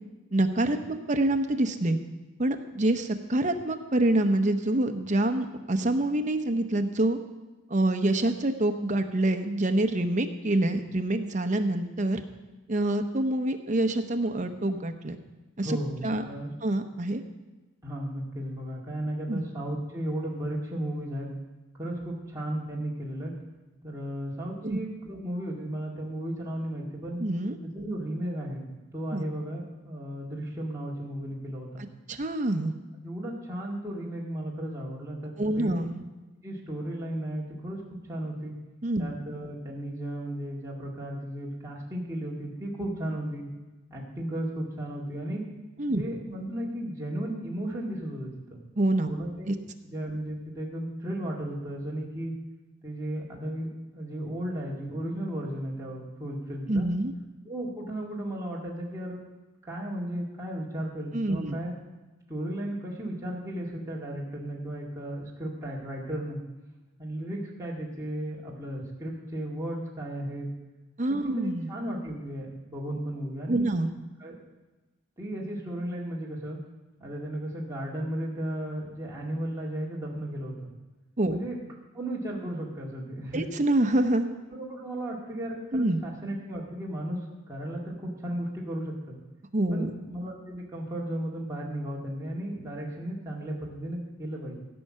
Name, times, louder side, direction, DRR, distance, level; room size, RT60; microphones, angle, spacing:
voice 1, 0.3-2.0 2.4-7.2 7.7-12.2 12.7-15.2 15.6-15.8 16.0-16.2 16.6-17.2 19.3-19.4 24.6-24.8 27.2-27.6 29.1-29.3 32.1-32.7 35.4-36.0 38.8-39.1 45.8-46.0 48.8-49.1 49.5-49.6 56.7-57.1 61.1-61.6 71.0-71.7 73.5-73.9 81.2-81.4 83.3-84.3 85.7-86.0 89.5-89.9, right 1 dB, 35° right, 7 dB, 0.8 m, -26 dB
voice 2, 15.6-16.5 17.8-21.3 21.8-23.3 23.8-27.2 27.7-31.8 33.0-35.7 36.4-37.8 38.1-38.5 39.0-43.5 43.9-45.5 45.9-48.6 49.1-49.5 49.8-52.3 52.8-53.7 53.9-56.9 57.5-59.2 59.7-61.7 62.3-66.4 67.0-70.5 71.1-73.7 74.2-74.4 75.2-76.6 77.0-80.6 81.3-81.6 81.9-83.5 84.6-87.2 87.5-89.2 89.7-94.6, right 1 dB, 15° right, -5 dB, 2.0 m, -35 dB
15.5 x 5.6 x 7.5 m, 1.2 s
head